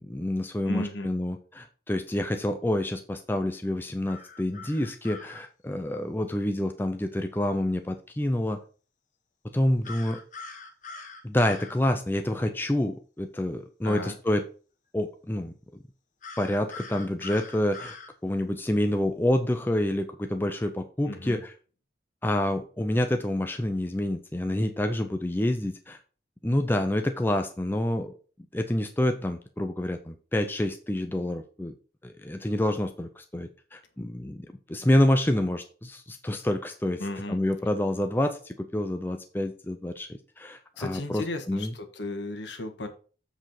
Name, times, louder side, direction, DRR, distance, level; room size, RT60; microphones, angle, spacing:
voice 1, 0.0-8.6 9.5-10.2 11.2-14.4 14.9-15.5 16.4-18.0 18.2-21.5 22.2-26.0 26.4-28.1 28.5-31.7 32.0-37.0 37.3-40.1 40.4-41.7, left 1 dB, 10° left, 6 dB, 0.5 m, -28 dB
voice 2, 0.6-1.1 13.8-14.1 21.1-21.4 37.0-37.4 40.8-42.9, left 1 dB, 75° left, 6 dB, 1.4 m, -34 dB
sound 1, 4.1-5.4 9.8-11.7 16.2-18.1, left 3 dB, 40° left, 1.0 m, -43 dB
7.8 x 5.0 x 4.3 m, 0.39 s
head